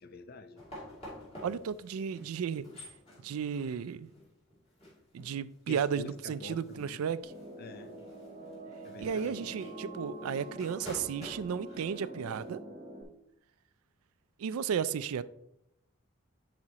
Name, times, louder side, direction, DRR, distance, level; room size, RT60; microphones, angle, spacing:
voice 1, 0.0-0.7 5.7-7.0 7.6-7.9 8.8-9.5, left 3 dB, 45° left, 0.4 m, -47 dB
sound 1, 0.6-12.5, left 1 dB, 30° left, 2.6 m, -51 dB
voice 2, 1.4-2.7 3.2-4.1 5.1-7.3 9.0-12.6 14.4-15.2, right 7 dB, 85° right, 0.4 m, -34 dB
sound 2, 7.2-13.0, right 1 dB, 25° right, 1.0 m, -45 dB
10.5 x 4.2 x 2.9 m
head